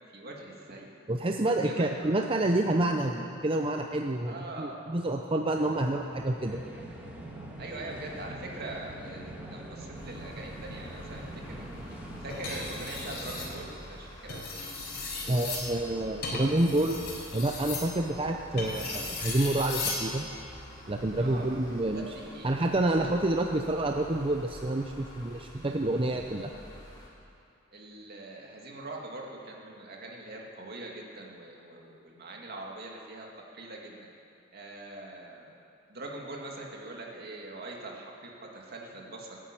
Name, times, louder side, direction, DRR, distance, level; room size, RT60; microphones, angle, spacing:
voice 1, 0.1-0.9 1.6-2.2 4.3-4.9 7.6-11.2 12.2-14.4 21.2-21.6 21.9-22.5 27.7-33.3 33.5-34.1 34.5-35.5 35.9-38.1 38.4-39.4, right 2 dB, 50° right, -1 dB, 2.3 m, -42 dB
voice 2, 1.1-6.6 15.3-17.0 17.3-20.3 20.9-22.1 22.4-26.5, right 1 dB, 25° right, 3 dB, 0.6 m, -28 dB
sound 1, 5.2-13.6, right 1 dB, 5° right, 2.1 m, -43 dB
sound 2, 9.9-27.1, equal, 20° left, 3.4 m, -49 dB
sound 3, 12.3-13.5 14.2-20.1 21.5-21.8, left 3 dB, 55° left, 4.0 m, -36 dB
16.0 x 9.9 x 9.0 m, 2.5 s
head